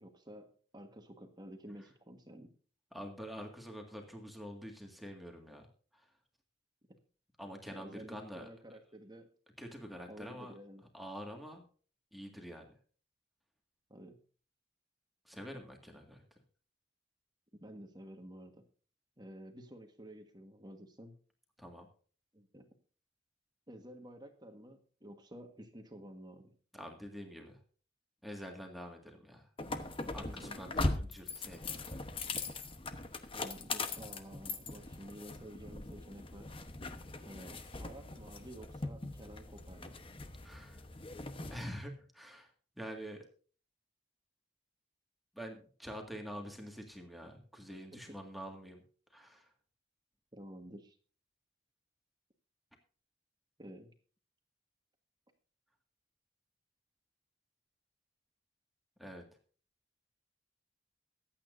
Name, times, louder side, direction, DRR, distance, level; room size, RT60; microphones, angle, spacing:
voice 1, 0.0-2.5 6.9-7.0 7.7-9.3 10.1-10.8 13.9-14.2 17.5-18.6 19.2-21.2 22.3-22.7 23.7-26.6 30.1-30.7 33.3-36.5 37.2-40.0 47.9-48.1 50.3-51.0 53.6-53.9, right 1 dB, 20° right, 5 dB, 1.5 m, -51 dB
voice 2, 2.9-5.6 5.9-6.1 7.4-8.5 9.6-10.5 10.9-11.7 12.1-12.7 15.3-16.2 21.6-21.9 26.7-27.6 28.2-29.5 30.1-32.0 40.4-40.8 41.5-43.2 45.3-48.8 49.1-49.5 59.0-59.2, equal, ahead, 2 dB, 1.9 m, -46 dB
sound 1, 29.6-41.6, left 3 dB, 30° left, 1.0 m, -40 dB
23.5 x 8.8 x 2.6 m, 0.42 s
head